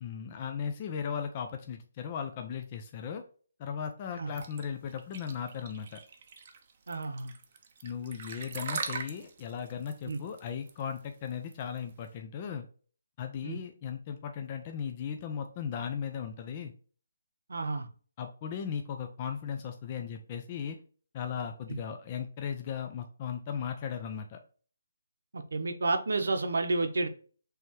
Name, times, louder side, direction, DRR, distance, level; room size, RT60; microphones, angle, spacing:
voice 1, 0.0-3.2 3.6-6.0 7.8-12.6 13.2-16.7 18.2-20.8 21.1-24.4, left 7 dB, 25° left, 0.4 m, -37 dB
sound 1, 4.4-12.1, right 6 dB, 35° right, 0.6 m, -41 dB
voice 2, 6.9-7.3 10.0-10.2 13.4-13.6 17.5-17.9 21.7-21.8 25.3-27.1, right 3 dB, 75° right, 0.7 m, -31 dB
4.6 x 3.4 x 3.0 m
hypercardioid pair, 170°, 0 cm